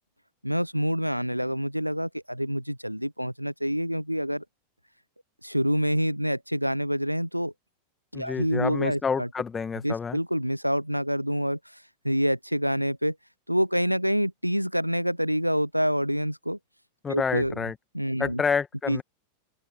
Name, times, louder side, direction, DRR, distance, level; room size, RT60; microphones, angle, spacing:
voice 1, 0.4-4.4 5.4-7.5 8.1-9.3 9.8-11.6 12.0-13.2 13.5-16.6 17.1-17.7 17.9-18.4 18.9-19.0, equal, 90° right, 0.8 m, -27 dB
voice 2, 8.1-10.2 17.0-17.7 18.2-19.0, left 6 dB, 15° left, 1.7 m, -28 dB
open air
figure-of-eight pair, 90°, 0 cm